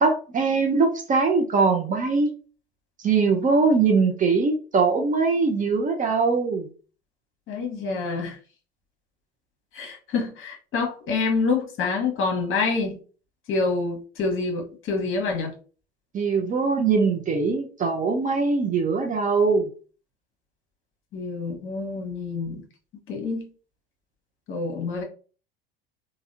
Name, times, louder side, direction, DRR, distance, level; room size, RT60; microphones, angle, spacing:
voice 1, 0.0-2.4 3.0-6.7 16.1-19.7, right 4 dB, 25° right, 4 dB, 0.6 m, -22 dB
voice 2, 7.5-8.4 9.7-13.0 13.5-15.5 21.1-22.6 23.1-23.5 24.5-25.0, left 4 dB, 45° left, 2 dB, 1.1 m, -27 dB
3.4 x 2.3 x 2.6 m, 0.38 s
hypercardioid pair, 80°, 30 cm